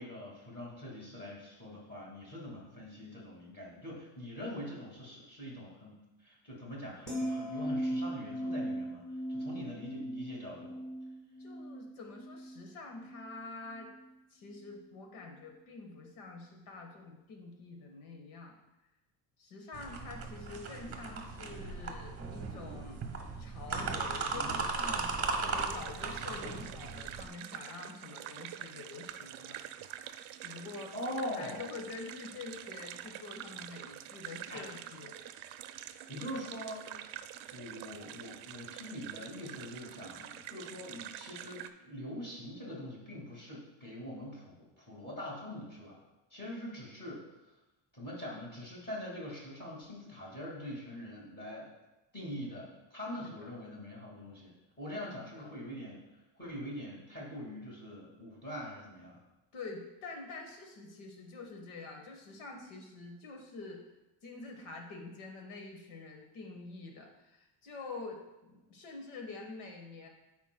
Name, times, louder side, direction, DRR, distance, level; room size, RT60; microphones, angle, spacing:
voice 1, 0.0-9.0 9.3-10.8 30.9-31.6 34.5-34.6 35.8-37.0 37.5-46.0 46.3-47.2 47.9-51.7 52.1-56.0 56.4-59.2, left 1 dB, 20° left, -5 dB, 2.1 m, -43 dB
sound 1, 7.1-13.3 13.7-14.0, right 1 dB, ahead, 1.4 m, -38 dB
voice 2, 11.4-13.9 14.3-18.5 19.4-23.0 23.4-29.6 29.9-31.0 31.4-35.2 53.2-53.5 55.4-55.5 59.5-63.8 64.2-70.1, left 3 dB, 75° left, 2 dB, 1.4 m, -46 dB
sound 2, 19.7-27.3, right 4 dB, 30° right, 0.8 m, -37 dB
sound 3, 25.5-41.7, right 11 dB, 70° right, 0.6 m, -46 dB
13.0 x 4.6 x 2.2 m, 1.0 s
cardioid pair, 155°, 49 cm